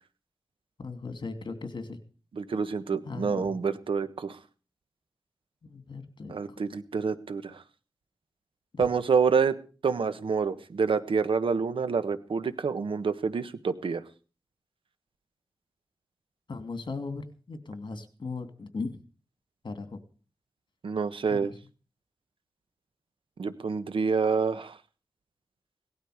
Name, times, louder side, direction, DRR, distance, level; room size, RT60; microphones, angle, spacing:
voice 1, 0.8-2.0 3.0-3.6 5.6-6.6 8.7-8.9 16.5-19.0 19.6-20.0 21.3-21.5, left 3 dB, 65° left, 9 dB, 2.7 m, -38 dB
voice 2, 2.3-4.4 6.3-7.6 8.8-9.5 9.8-14.0 20.8-21.5 23.4-24.8, right 5 dB, 90° right, 12 dB, 1.3 m, -27 dB
18.0 x 12.5 x 5.0 m, 0.37 s
wide cardioid pair, 75°, 9 cm